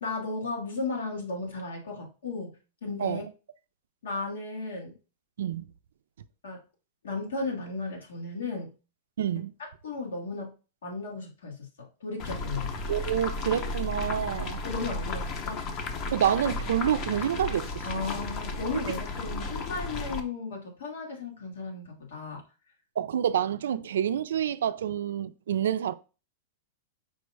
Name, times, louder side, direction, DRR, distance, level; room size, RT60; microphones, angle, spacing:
voice 1, 0.0-2.6 2.8-3.2 4.0-5.0 6.4-6.6 7.0-8.7 9.3-9.4 9.8-10.5 10.8-11.7 12.0-12.7 14.6-15.6 17.8-22.4, left 3 dB, 90° left, 1.6 m, -35 dB
voice 2, 9.2-9.5 12.9-14.6 16.1-17.8 18.9-19.0 23.0-25.9, right 9 dB, 85° right, 0.3 m, -28 dB
sound 1, 12.2-20.2, left 3 dB, 40° left, 0.7 m, -34 dB
5.0 x 2.1 x 4.7 m
hypercardioid pair, 130°, 0 cm